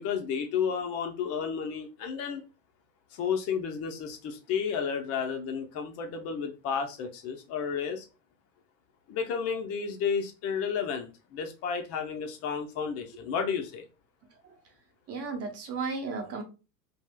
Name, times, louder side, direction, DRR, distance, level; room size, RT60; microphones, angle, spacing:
voice 1, 0.0-2.4 3.1-8.0 9.1-13.8, left 6 dB, 30° left, 0.6 m, -32 dB
voice 2, 15.1-16.4, right 4 dB, 30° right, 0.9 m, -34 dB
3.4 x 2.5 x 2.2 m
figure-of-eight pair, 90°, 50 cm